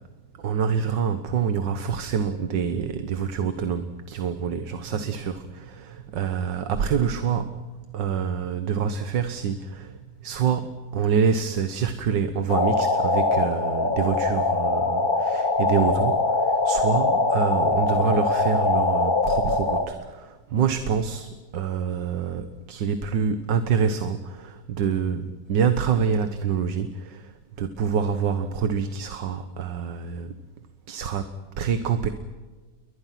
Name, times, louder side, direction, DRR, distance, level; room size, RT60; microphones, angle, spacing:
voice 1, 0.4-7.7 7.9-27.3 27.6-30.3 30.9-32.1, right 6 dB, 85° right, 1.9 m, -26 dB
sound 1, 12.5-19.9, left 3 dB, 30° left, 1.7 m, -22 dB
29.5 x 23.0 x 5.9 m
omnidirectional pair, 1.9 m